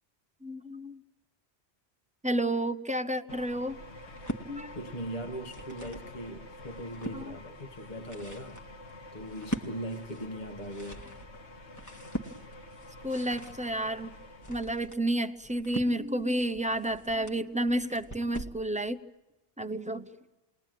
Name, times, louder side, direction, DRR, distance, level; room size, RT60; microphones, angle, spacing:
voice 1, 0.4-1.0 2.2-3.8 4.5-4.7 7.1-7.3 13.0-14.1 14.5-19.0 19.6-20.1, right 1 dB, 10° right, 0.7 m, -31 dB
sound 1, 3.3-14.9, left 1 dB, 80° left, 1.9 m, -48 dB
sound 2, 4.0-4.5 5.2-6.1 6.6-7.2 7.8-18.6, equal, 15° left, 1.5 m, -41 dB
voice 2, 4.7-8.6 9.1-11.1, equal, 40° left, 1.5 m, -40 dB
29.0 x 21.0 x 9.2 m
omnidirectional pair, 1.1 m